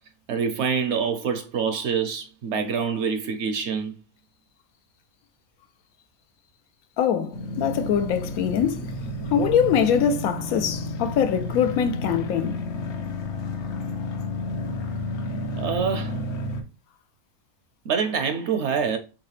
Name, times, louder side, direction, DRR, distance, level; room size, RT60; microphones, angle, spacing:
voice 1, 0.3-3.9 15.6-16.2 17.8-19.0, right 6 dB, 65° right, 0.7 m, -26 dB
voice 2, 7.0-8.9 9.3-12.6, left 8 dB, 85° left, 1.1 m, -23 dB
sound 1, 7.3-16.6, left 1 dB, 60° left, 0.9 m, -31 dB
4.8 x 2.8 x 3.2 m
omnidirectional pair, 1.5 m